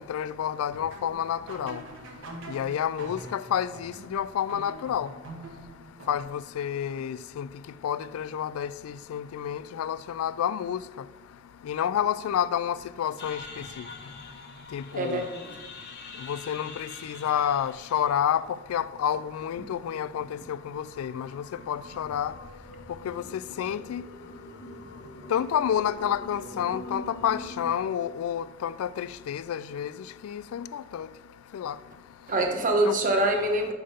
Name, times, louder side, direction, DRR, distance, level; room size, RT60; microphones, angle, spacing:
voice 1, 0.0-1.8 2.5-5.1 6.1-7.5 7.8-10.8 11.7-13.8 14.7-15.3 16.2-22.3 23.0-24.1 25.3-29.9 30.2-31.1 31.5-31.7 32.8-33.0, left 9 dB, 80° left, 0.3 m, -29 dB
sound 1, 0.7-6.6, right 2 dB, 65° right, 1.1 m, -44 dB
sound 2, 13.2-27.7, left 2 dB, 55° left, 1.0 m, -45 dB
voice 2, 14.9-15.6 32.3-33.7, right 1 dB, 40° right, 1.0 m, -25 dB
8.6 x 3.6 x 5.5 m
head